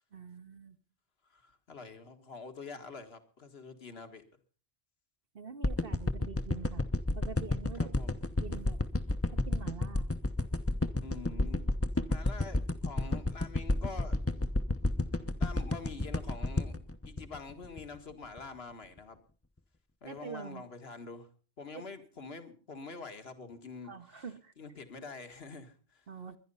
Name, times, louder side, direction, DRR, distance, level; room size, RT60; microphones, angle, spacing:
voice 1, 0.1-0.8 5.3-6.8 7.1-7.9 8.4-8.8 9.3-10.1 20.0-20.7 21.7-21.8 23.8-24.5 26.1-26.4, right 6 dB, 60° right, 7 dB, 1.2 m, -45 dB
voice 2, 1.3-4.2 7.7-8.2 11.0-11.6 12.1-14.2 15.4-16.8 17.1-19.2 20.0-21.3 21.6-24.2 24.6-26.1, left 4 dB, 70° left, 7 dB, 2.0 m, -46 dB
sound 1, 5.6-18.0 18.4-18.5, left 2 dB, 15° left, 0.8 m, -30 dB
21.5 x 11.0 x 5.5 m, 0.41 s
omnidirectional pair, 1.1 m